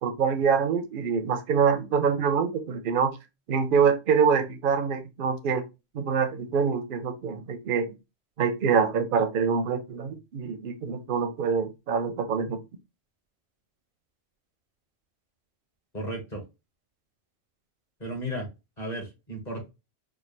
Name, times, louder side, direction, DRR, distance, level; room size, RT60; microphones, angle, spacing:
voice 1, 0.0-3.1 3.5-5.6 5.9-7.9 8.4-12.6, right 6 dB, 55° right, 0.7 m, -25 dB
voice 2, 15.9-16.4 18.0-18.5 18.8-19.7, equal, 35° left, 1.5 m, -34 dB
4.6 x 2.2 x 3.2 m
omnidirectional pair, 1.3 m